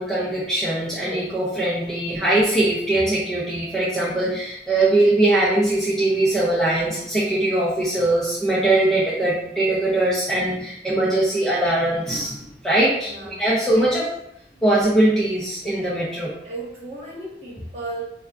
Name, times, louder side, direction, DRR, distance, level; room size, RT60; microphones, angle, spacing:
voice 1, 0.0-14.0 14.6-16.3, right 1 dB, ahead, -8 dB, 0.5 m, -21 dB
voice 2, 13.0-13.9 14.5-14.6 16.4-18.0, right 2 dB, 35° right, -7 dB, 1.2 m, -35 dB
4.4 x 2.2 x 2.4 m, 0.78 s
head